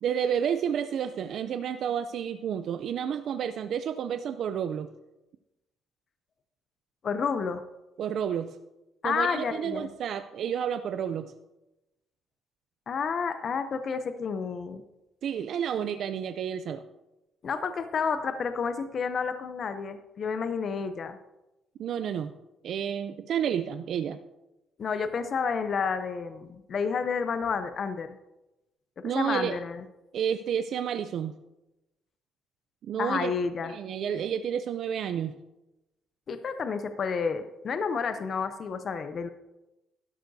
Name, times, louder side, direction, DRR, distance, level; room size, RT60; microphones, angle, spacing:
voice 1, 0.0-4.9 8.0-8.6 9.0-11.3 15.2-16.8 21.8-22.3 22.6-24.2 29.0-29.5 30.1-31.4 32.9-33.3 33.7-35.4, right 8 dB, 55° right, 9 dB, 0.4 m, -30 dB
voice 2, 7.0-7.6 9.0-9.9 12.9-14.8 17.4-21.2 24.8-28.2 29.1-29.8 33.0-33.7 36.3-39.3, left 5 dB, 40° left, 10 dB, 0.6 m, -30 dB
12.5 x 11.5 x 2.7 m, 0.97 s
cardioid pair, 140°, 0 cm